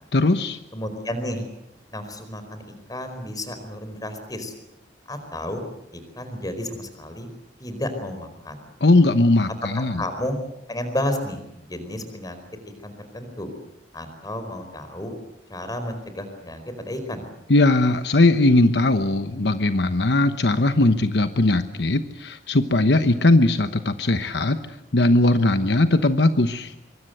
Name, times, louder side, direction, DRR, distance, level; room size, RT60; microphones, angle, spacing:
voice 1, 0.1-0.6 8.8-10.0 17.5-24.6 24.9-26.7, left 2 dB, 70° left, 10 dB, 1.1 m, -19 dB
voice 2, 0.7-1.4 1.9-4.5 5.1-5.6 5.9-7.3 7.6-8.6 9.7-10.4 10.7-12.4 12.6-13.5 13.9-15.1 15.5-17.3, left 1 dB, 20° left, 8 dB, 4.7 m, -32 dB
25.0 x 23.5 x 7.9 m, 0.84 s
head